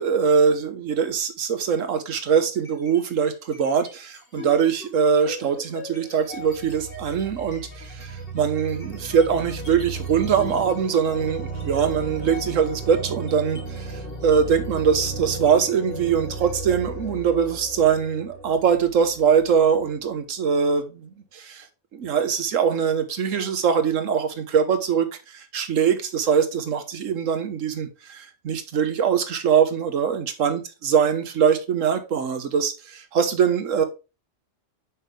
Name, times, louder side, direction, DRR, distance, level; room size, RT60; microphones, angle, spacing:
voice 1, 0.0-21.6 21.9-33.8, right 7 dB, 80° right, 1.4 m, -22 dB
sound 1, 2.6-3.1 3.4-20.0, right 2 dB, 50° left, 2.3 m, -35 dB
6.3 x 5.6 x 3.5 m
omnidirectional pair, 1.3 m